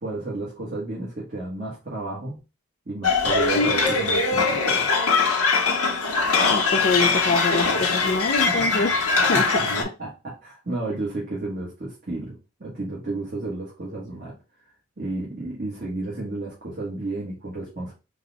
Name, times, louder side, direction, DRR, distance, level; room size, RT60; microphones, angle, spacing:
voice 1, 0.0-2.4 2.9-5.0 9.3-14.4 15.0-17.9, right 2 dB, 40° right, -5 dB, 1.3 m, -32 dB
sound 1, 3.0-9.8, left 4 dB, 85° left, 1.0 m, -21 dB
voice 2, 6.5-9.0 9.3-9.5, left 3 dB, 45° left, 2 dB, 0.4 m, -25 dB
3.9 x 2.3 x 3.9 m, 0.29 s
head